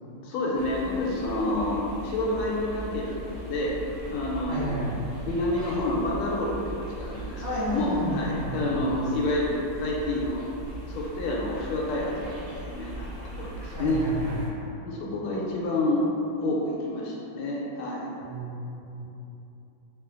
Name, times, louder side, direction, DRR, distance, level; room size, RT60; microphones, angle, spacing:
voice 1, 0.0-4.8 5.2-7.4 7.7-10.4 10.9-13.1 13.4-14.0 14.8-16.1 16.4-18.1, left 1 dB, 80° left, -4 dB, 1.4 m, -29 dB
sound 1, 0.5-14.5, right 1 dB, 55° right, 1.1 m, -39 dB
voice 2, 4.5-5.0 7.4-9.0 13.7-14.6 18.2-19.0, equal, 80° right, -15 dB, 1.8 m, -32 dB
4.5 x 2.4 x 2.4 m, 2.9 s
omnidirectional pair, 2.4 m